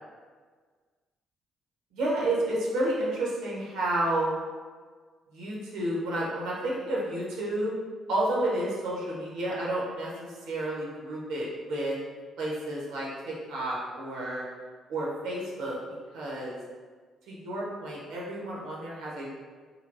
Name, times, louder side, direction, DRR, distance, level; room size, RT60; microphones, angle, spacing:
voice 1, 1.9-4.3 5.3-7.7 8.1-12.0 12.4-14.4 14.9-15.8 16.1-16.6 17.3-19.4, right 1 dB, 60° right, -5 dB, 0.7 m, -31 dB
3.2 x 2.7 x 2.5 m, 1.5 s
figure-of-eight pair, 45°, 0 cm